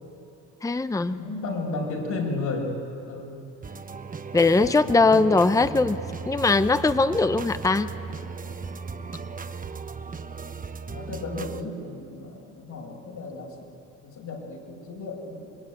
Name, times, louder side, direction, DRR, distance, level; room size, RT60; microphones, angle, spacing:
voice 1, 0.6-1.2 4.3-6.0 6.3-7.9, left 3 dB, 10° left, 12 dB, 0.7 m, -20 dB
voice 2, 1.1-2.7 3.1-3.3 4.5-6.0 10.9-13.7 14.0-15.6, left 3 dB, 75° left, -2 dB, 6.4 m, -34 dB
sound 1, 3.6-11.6, right 5 dB, 25° right, 1.0 m, -37 dB
26.5 x 21.5 x 8.7 m, 2.6 s
cardioid pair, 90°, 30 cm